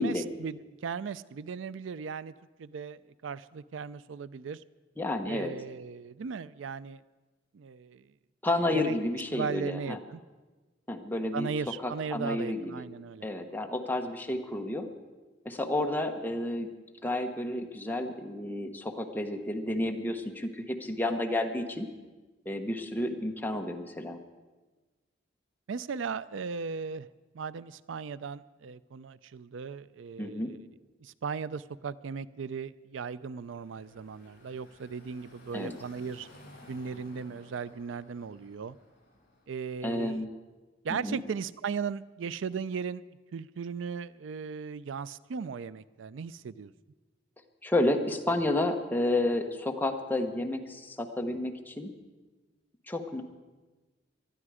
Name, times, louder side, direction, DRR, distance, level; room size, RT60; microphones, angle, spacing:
voice 1, 0.0-2.3 2.6-4.6 5.3-7.0 7.5-8.1 8.7-9.0 9.3-10.2 11.3-13.3 25.7-27.1 27.3-30.6 31.0-36.3 36.7-38.8 39.5-40.3 40.8-43.0 43.3-46.7, right 5 dB, 80° right, 18 dB, 0.4 m, -37 dB
voice 2, 5.0-5.5 8.4-10.0 10.9-11.5 11.8-12.9 13.2-14.9 15.4-16.7 17.0-21.9 22.4-24.2 30.2-30.5 35.5-35.7 39.8-40.3 41.0-41.2 47.6-51.9 52.9-53.2, left 1 dB, 10° left, 3 dB, 1.1 m, -31 dB
Car passing by / Traffic noise roadway noise, 33.1-40.0, left 1 dB, 55° left, 6.0 m, -56 dB
19.5 x 12.5 x 4.9 m, 1.2 s
head